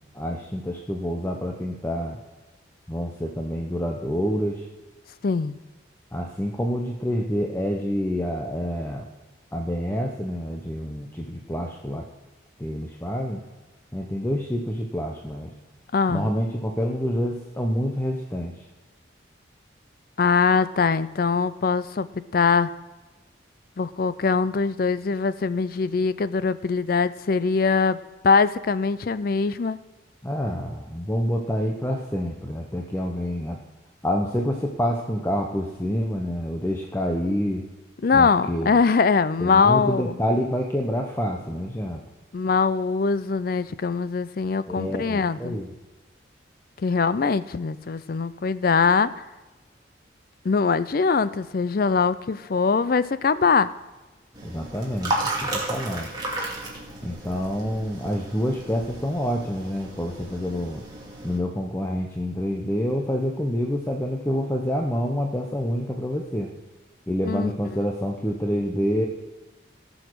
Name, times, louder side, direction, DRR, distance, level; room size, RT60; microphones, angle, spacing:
voice 1, 0.1-2.2 2.9-4.7 6.1-9.1 9.5-12.1 12.6-13.4 13.9-15.5 16.1-18.7 30.2-33.6 34.0-37.6 38.1-38.7 39.4-42.0 44.7-45.7 54.4-56.1 57.0-60.8 61.2-66.5 67.1-69.1, equal, 10° left, 1 dB, 0.7 m, -27 dB
voice 2, 5.2-5.6 15.9-16.3 20.2-22.1 22.3-22.7 23.8-28.0 28.2-29.8 38.0-40.2 42.3-45.6 46.8-49.2 50.4-53.7 67.2-67.5, left 5 dB, 50° left, 15 dB, 0.4 m, -22 dB
sound 1, 54.3-61.4, right 1 dB, 20° right, 2.1 m, -33 dB
18.0 x 6.4 x 4.6 m, 1.2 s
head